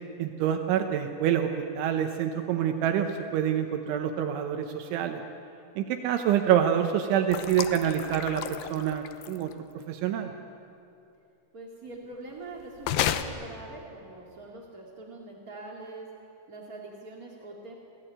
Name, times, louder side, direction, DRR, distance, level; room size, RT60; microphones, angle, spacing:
voice 1, 0.2-5.2 5.8-9.5 9.9-10.3, right 9 dB, 75° right, 5 dB, 3.3 m, -27 dB
sound 1, 7.3-9.5 12.8-13.2, left 11 dB, 80° left, 2.4 m, -31 dB
voice 2, 11.5-16.1 16.5-17.7, right 2 dB, 40° right, -2 dB, 1.3 m, -43 dB
28.0 x 18.5 x 9.0 m, 2.7 s
omnidirectional pair, 5.7 m